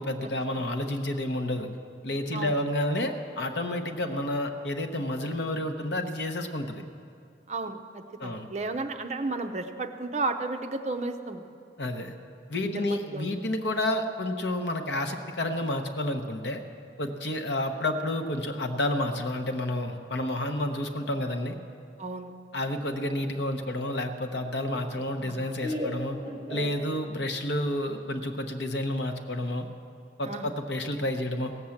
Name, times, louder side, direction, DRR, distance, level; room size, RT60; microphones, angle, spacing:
voice 1, 0.0-1.7 2.0-6.8 8.2-8.5 11.8-12.1 12.5-16.6 17.0-21.6 22.5-26.2 26.5-29.7 30.2-31.5, left 1 dB, 65° left, 6 dB, 0.9 m, -30 dB
voice 2, 7.5-11.4 12.6-13.3 22.0-22.3 25.2-25.5 30.2-30.5, right 3 dB, 35° right, 6 dB, 0.6 m, -33 dB
Laughter, 23.7-27.3, equal, 20° right, 1.7 m, -37 dB
16.5 x 7.7 x 7.1 m, 2.4 s
head